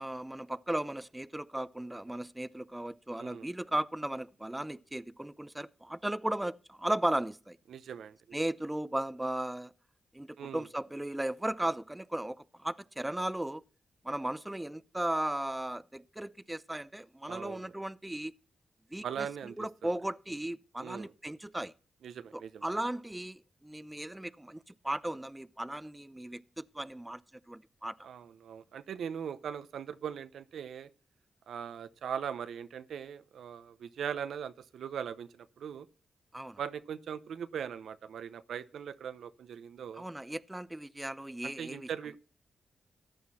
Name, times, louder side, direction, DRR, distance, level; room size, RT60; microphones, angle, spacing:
voice 1, 0.0-7.6 8.3-9.7 10.1-13.6 14.0-18.3 18.9-19.3 19.6-21.7 22.3-27.2 27.5-27.9 36.3-36.6 40.0-41.9, right 1 dB, 15° right, 0.6 m, -36 dB
voice 2, 7.7-8.2 10.4-10.7 17.3-17.7 19.0-19.7 20.8-21.1 22.0-22.6 28.0-30.9 31.5-35.9 36.6-40.0 41.4-42.2, right 8 dB, 80° right, 0.6 m, -40 dB
14.5 x 9.5 x 4.2 m
supercardioid pair, 50°, 0 cm